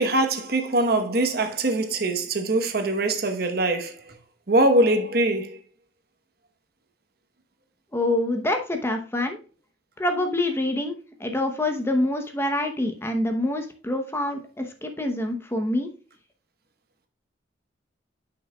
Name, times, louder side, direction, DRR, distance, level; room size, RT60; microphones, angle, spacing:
voice 1, 0.0-4.2 4.5-5.6, right 2 dB, 55° right, 1.0 m, -23 dB
voice 2, 7.9-9.4 10.0-10.9 11.2-15.9, left 1 dB, 15° left, 0.8 m, -26 dB
10.0 x 5.9 x 2.3 m
head